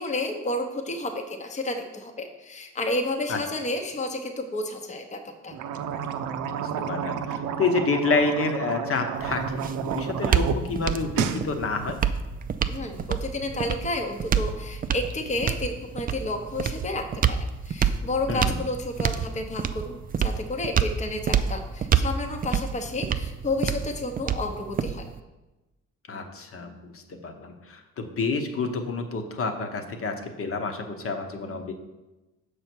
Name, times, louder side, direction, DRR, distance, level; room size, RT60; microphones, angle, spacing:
voice 1, 0.0-5.5 12.7-25.1, left 2 dB, 25° left, 4 dB, 0.8 m, -31 dB
sound 1, 5.5-10.6 10.9-11.4, right 7 dB, 80° right, 0.6 m, -30 dB
voice 2, 6.5-12.0 18.3-18.6 26.1-31.7, left 4 dB, 45° left, 5 dB, 1.0 m, -29 dB
sound 2, 9.2-25.2, right 7 dB, 30° right, 0.4 m, -28 dB
6.8 x 5.5 x 4.5 m, 1.1 s
cardioid pair, 90°, 30 cm